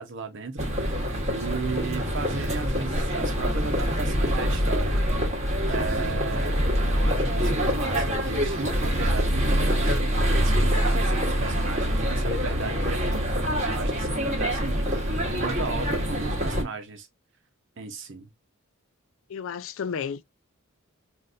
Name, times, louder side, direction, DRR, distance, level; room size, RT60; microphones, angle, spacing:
voice 1, 0.0-15.0 15.4-17.1 17.8-18.3, right 4 dB, 60° right, 0.9 m, -36 dB
sound 1, 0.6-16.6, equal, 30° right, 1.3 m, -25 dB
voice 2, 19.3-20.2, left 6 dB, 65° left, 0.4 m, -32 dB
4.0 x 2.6 x 2.5 m
head